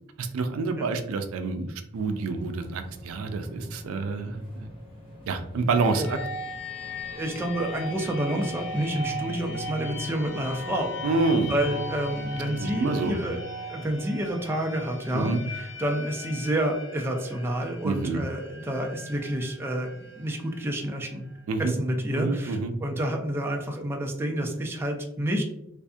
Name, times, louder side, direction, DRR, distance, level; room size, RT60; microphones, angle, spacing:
voice 1, 0.2-4.7 5.3-6.2 11.0-11.5 12.5-13.1 15.1-15.4 17.8-18.2 21.5-21.7 22.2-22.7, right 3 dB, 90° right, 7 dB, 0.4 m, -27 dB
sound 1, 1.9-12.4, left 1 dB, 25° left, 0.9 m, -48 dB
sound 2, 5.7-21.4, left 2 dB, 65° left, 0.6 m, -38 dB
voice 2, 7.1-10.9 11.5-13.4 13.7-21.2 21.6-25.4, right 1 dB, 10° right, 1 dB, 0.3 m, -29 dB
2.6 x 2.4 x 2.3 m, 0.81 s
head